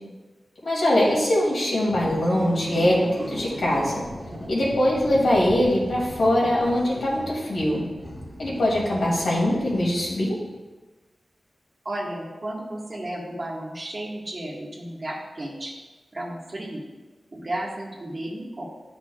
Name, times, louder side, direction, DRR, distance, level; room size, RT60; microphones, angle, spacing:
voice 1, 0.6-4.0 4.5-7.8 8.4-10.4, left 1 dB, 80° left, -5 dB, 2.6 m, -22 dB
sound 1, 1.8-10.4, equal, ahead, 1.8 m, -37 dB
voice 2, 11.8-15.7 16.1-16.8 17.3-18.6, right 1 dB, 40° right, -4 dB, 1.7 m, -33 dB
11.5 x 6.1 x 2.4 m, 1.2 s
wide cardioid pair, 85°, 0 cm